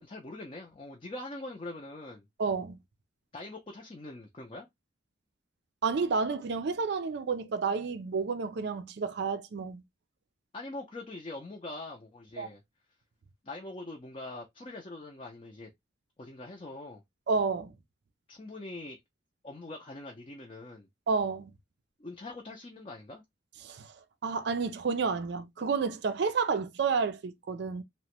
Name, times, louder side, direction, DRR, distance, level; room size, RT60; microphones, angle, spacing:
voice 1, 0.0-2.3 3.3-4.7 10.5-12.6 13.4-15.7 16.2-17.0 18.3-19.0 19.4-20.9 22.0-23.2, left 2 dB, 30° left, 0.5 m, -43 dB
voice 2, 2.4-2.8 5.8-9.8 12.4-12.5 17.3-17.7 21.1-21.5 23.6-23.9 24.2-27.8, right 5 dB, 60° right, 0.4 m, -30 dB
2.9 x 2.1 x 2.9 m
head